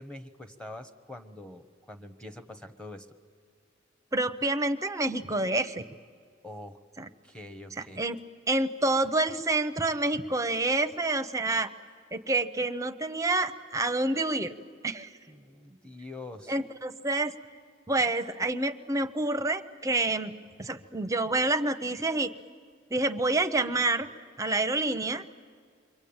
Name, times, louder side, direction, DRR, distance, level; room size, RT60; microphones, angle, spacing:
voice 1, 0.0-3.2 6.4-6.8 7.2-8.0 15.3-16.6, left 2 dB, 5° left, 7 dB, 1.0 m, -44 dB
voice 2, 4.1-5.8 7.0-7.1 8.0-8.2 8.5-11.7 12.1-14.5 14.8-15.1 16.5-17.3 17.9-20.3 20.6-22.3 22.9-24.1 24.4-25.2, right 2 dB, 15° right, 8 dB, 0.7 m, -28 dB
28.5 x 23.5 x 8.8 m, 2.1 s
head